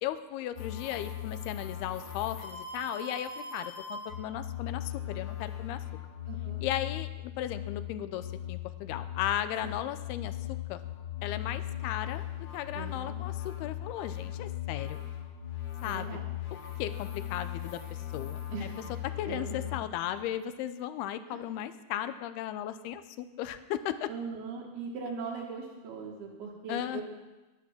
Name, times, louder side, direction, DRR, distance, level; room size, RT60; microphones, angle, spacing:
voice 1, 0.0-5.8 6.6-10.4 10.7-10.8 11.2-12.3 12.5-15.0 15.8-16.1 16.8-18.4 19.2-24.1 26.7-27.0, left 11 dB, 85° left, 11 dB, 2.7 m, -36 dB
sound 1, 0.6-19.8, left 11 dB, 50° left, 2.6 m, -38 dB
voice 2, 6.3-6.6 9.6-9.8 12.7-13.3 15.8-16.3 18.5-18.9 19.2-19.7 21.3-21.4 24.1-27.0, right 5 dB, 75° right, -1 dB, 3.4 m, -40 dB
21.0 x 8.5 x 7.3 m, 1.1 s
omnidirectional pair, 4.6 m